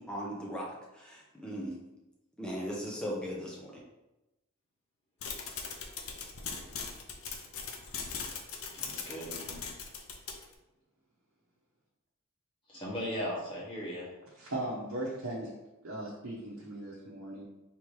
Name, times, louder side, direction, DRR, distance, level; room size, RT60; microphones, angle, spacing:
voice 1, 0.0-1.7 2.4-3.8, equal, 5° left, -4 dB, 0.8 m, -38 dB
sound 1, 5.2-10.5, left 5 dB, 80° left, 0.6 m, -40 dB
voice 2, 8.7-9.6 12.7-14.1, equal, 25° left, -6 dB, 1.3 m, -38 dB
voice 3, 14.4-15.5 15.8-17.5, right 1 dB, 80° right, -6 dB, 0.9 m, -38 dB
3.5 x 3.0 x 4.7 m, 0.99 s
head